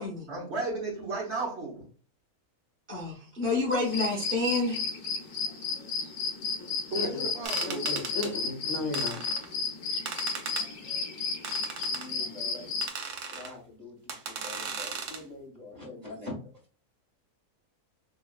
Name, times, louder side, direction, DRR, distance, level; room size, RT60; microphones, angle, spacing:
voice 1, 0.3-1.8 6.9-7.8, right 3 dB, 50° right, -2 dB, 1.2 m, -34 dB
voice 2, 2.9-4.8, left 2 dB, 10° right, -4 dB, 0.7 m, -28 dB
sound 1, 3.7-12.9, left 4 dB, 90° left, 1.4 m, -33 dB
voice 3, 6.6-7.3 7.6-9.2, left 3 dB, 60° left, 1 dB, 1.0 m, -35 dB
sound 2, 7.4-8.3 8.9-9.5 10.1-10.7 11.4-12.1 12.8-13.5 14.1-15.2, right 5 dB, 90° right, 1.3 m, -37 dB
voice 4, 11.8-12.7 13.3-16.3, left 2 dB, 30° right, -3 dB, 1.5 m, -44 dB
5.5 x 2.4 x 2.3 m, 0.41 s
omnidirectional pair, 1.6 m